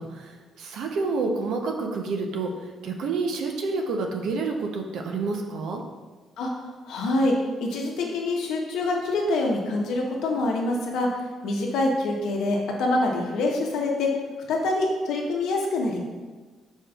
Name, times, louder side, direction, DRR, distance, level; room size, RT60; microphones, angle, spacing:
voice 1, 0.0-5.8, right 3 dB, 80° right, 2 dB, 0.6 m, -29 dB
voice 2, 6.8-7.3 7.6-11.1 11.4-14.1 14.5-16.0, left 2 dB, 85° left, 0 dB, 0.8 m, -25 dB
5.0 x 4.4 x 2.3 m, 1.4 s
cardioid pair, 90°, 0 cm